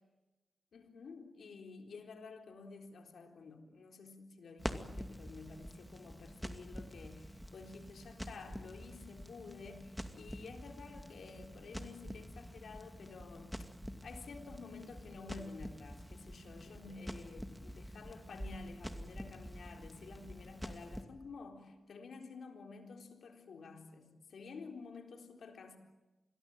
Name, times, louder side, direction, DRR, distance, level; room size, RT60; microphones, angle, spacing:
voice 1, 0.7-13.6 14.0-25.8, left 4 dB, 80° left, 4 dB, 3.9 m, -51 dB
Crackle, 4.6-21.0, equal, ahead, 2.4 m, -47 dB
27.0 x 21.5 x 9.0 m, 1.1 s
cardioid pair, 60°, 0 cm